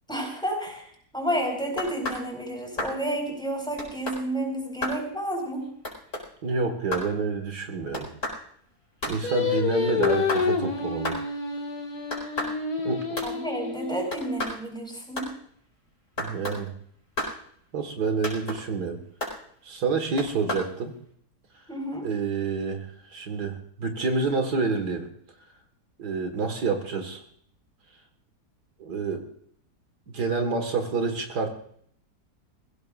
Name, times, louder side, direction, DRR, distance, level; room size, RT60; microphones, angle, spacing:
voice 1, 0.1-5.7 13.2-15.3 21.7-22.1, right 1 dB, 5° left, 1 dB, 4.8 m, -30 dB
sound 1, 1.8-2.2 2.8-3.0 3.8-4.2 4.8-5.0 5.8-6.2 6.9-7.1 7.9-8.4 9.0-9.2 10.0-10.5 11.0-11.2 12.1-12.6 13.2-13.3 14.1-14.6 15.2-15.3 16.2-16.6 17.2-17.4 18.2-18.6 19.2-19.4 20.2-20.7, left 1 dB, 40° left, 5.0 m, -31 dB
voice 2, 6.4-8.1 9.1-11.2 12.8-13.0 16.2-16.7 17.7-19.0 19.6-20.9 22.0-25.1 26.0-27.2 28.8-29.3 30.1-31.5, right 4 dB, 75° right, 5 dB, 2.2 m, -28 dB
Singing, 9.2-14.5, left 5 dB, 65° left, 2.7 m, -29 dB
23.0 x 16.0 x 2.5 m, 0.64 s
omnidirectional pair, 1.7 m